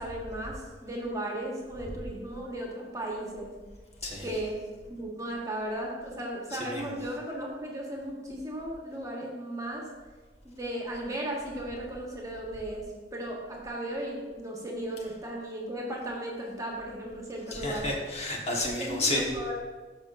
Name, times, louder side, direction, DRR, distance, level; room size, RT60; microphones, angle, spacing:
voice 1, 0.0-3.5 4.2-4.6 4.9-9.9 10.4-17.9 18.8-19.6, right 1 dB, 20° right, -2 dB, 1.4 m, -36 dB
voice 2, 17.5-19.3, left 1 dB, 40° left, -2 dB, 1.5 m, -30 dB
13.5 x 5.7 x 2.6 m, 1.4 s
head